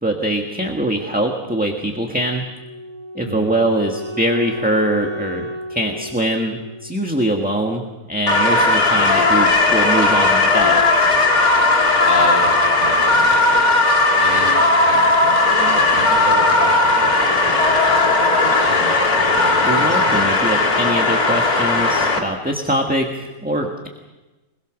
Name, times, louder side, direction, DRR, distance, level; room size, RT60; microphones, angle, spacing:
voice 1, 0.0-2.4 3.1-7.8 8.1-10.8 19.6-23.9, right 1 dB, 5° right, 2 dB, 1.6 m, -22 dB
Wind instrument woodwind instrument, 2.6-7.6, equal, 80° right, 5.9 m, -33 dB
sound 1, 8.3-22.2, left 2 dB, 80° left, 3.2 m, -16 dB
voice 2, 12.1-13.7 14.2-14.5 14.8-20.5, equal, 30° right, -3 dB, 6.3 m, -29 dB
26.0 x 22.0 x 6.4 m, 1.1 s
omnidirectional pair, 1.5 m